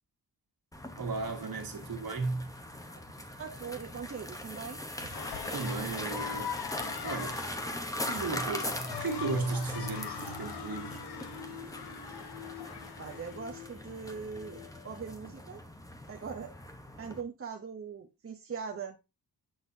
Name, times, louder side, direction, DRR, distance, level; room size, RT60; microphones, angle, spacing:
sound 1, 0.7-17.2, left 1 dB, 10° left, 0.8 m, -41 dB
voice 1, 1.0-2.5 3.2-3.3 5.5-6.5 7.0-7.5 8.1-11.0, right 3 dB, 60° right, 1.9 m, -35 dB
voice 2, 3.4-5.2 13.0-15.6 16.1-16.5 17.0-19.0, right 6 dB, 35° right, 0.7 m, -41 dB
sound 2, 5.1-13.4, left 7 dB, 85° left, 1.0 m, -42 dB
sound 3, 8.9-15.1, left 7 dB, 60° left, 1.6 m, -46 dB
7.6 x 6.3 x 2.6 m
wide cardioid pair, 155°, 38 cm